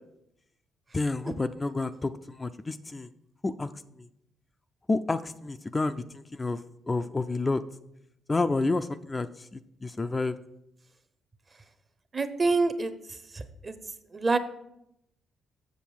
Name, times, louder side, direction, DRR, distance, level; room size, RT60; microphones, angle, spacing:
voice 1, 0.9-3.1 3.4-3.7 4.9-6.6 6.9-7.6 8.3-10.4, left 3 dB, 25° left, 9 dB, 0.3 m, -29 dB
voice 2, 12.1-12.9 13.3-13.8 14.1-14.4, right 3 dB, 30° right, 11 dB, 0.7 m, -26 dB
7.2 x 6.5 x 4.6 m, 0.80 s
cardioid pair, 90°, 0 cm